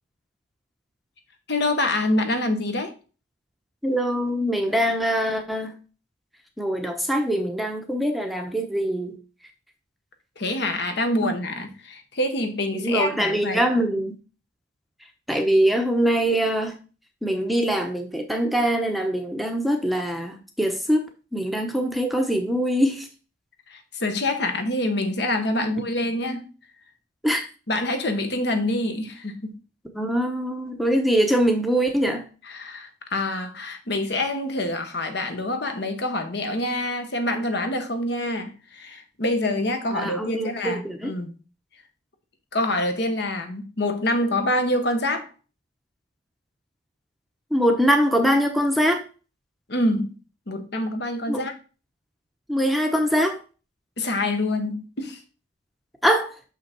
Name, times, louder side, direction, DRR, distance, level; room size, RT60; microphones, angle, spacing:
voice 1, 1.5-2.9 10.4-13.6 23.7-26.5 27.7-29.6 32.5-41.3 42.5-45.3 49.7-50.1 50.5-51.5 54.0-55.2, left 1 dB, 60° left, 7 dB, 1.2 m, -26 dB
voice 2, 3.8-5.7 6.6-9.2 11.2-11.3 12.7-14.1 15.3-16.7 17.2-23.1 27.2-27.5 29.9-32.2 39.9-40.5 40.8-41.1 47.5-49.0 51.3-51.4 52.5-53.4 56.0-56.3, equal, ahead, 3 dB, 0.8 m, -23 dB
6.3 x 5.7 x 4.4 m, 0.35 s
head